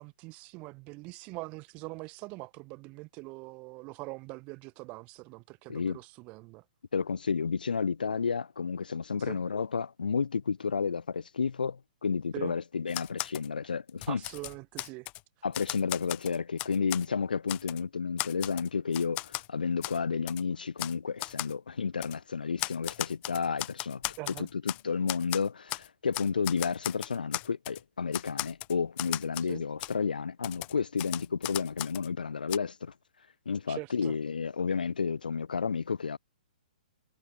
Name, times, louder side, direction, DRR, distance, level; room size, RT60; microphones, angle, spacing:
voice 1, 0.0-6.6 9.2-9.4 12.3-12.5 14.1-15.1 24.2-24.5 29.5-29.6 33.7-34.1, right 25 dB, 30° right, 0.5 m, -43 dB
voice 2, 6.9-14.2 15.4-24.0 24.4-32.9 33.5-36.2, left 5 dB, 90° left, 1.0 m, -31 dB
Typewriter, 12.9-13.5 13.9-15.2 15.5-17.1 17.5-17.8 18.2-19.5 19.8-20.0 20.3-20.4 20.8-20.9 21.2-21.5 22.0-22.2 22.6-24.8 25.1-25.9 26.1-27.8 28.1-29.5 29.8-29.9 30.4-32.1 32.5-32.6, left 22 dB, 30° left, 0.7 m, -36 dB
hypercardioid pair, 140°, 5 cm